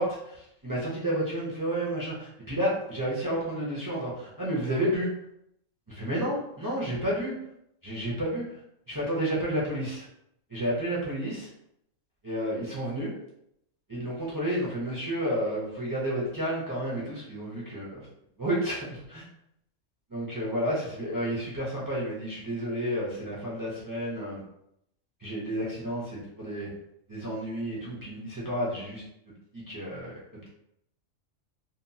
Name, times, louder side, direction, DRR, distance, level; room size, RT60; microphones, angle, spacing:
voice 1, 0.0-5.1 5.9-7.3 7.8-8.6 8.9-10.1 10.5-11.5 12.2-13.1 13.9-18.1 18.4-19.3 20.1-24.4 25.2-26.7 27.1-29.0 29.5-30.5, right 1 dB, 30° right, -6 dB, 0.4 m, -31 dB
2.9 x 2.2 x 2.6 m, 0.77 s
omnidirectional pair, 1.4 m